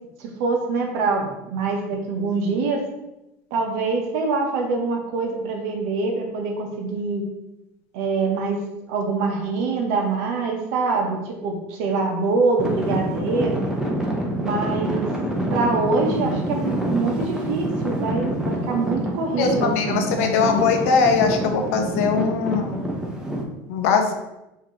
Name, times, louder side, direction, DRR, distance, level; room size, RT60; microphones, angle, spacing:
voice 1, 0.2-2.8 3.5-7.2 7.9-8.6 8.9-13.6 14.4-15.1 15.5-20.5, right 3 dB, 80° right, 2 dB, 1.0 m, -24 dB
Traffic noise roadway noise / Engine, 12.6-23.4, right 1 dB, 10° right, 0.9 m, -26 dB
voice 2, 19.4-22.8 23.7-24.1, left 5 dB, 85° left, 5 dB, 0.7 m, -21 dB
5.9 x 2.8 x 3.1 m, 0.93 s
supercardioid pair, 115°, 8 cm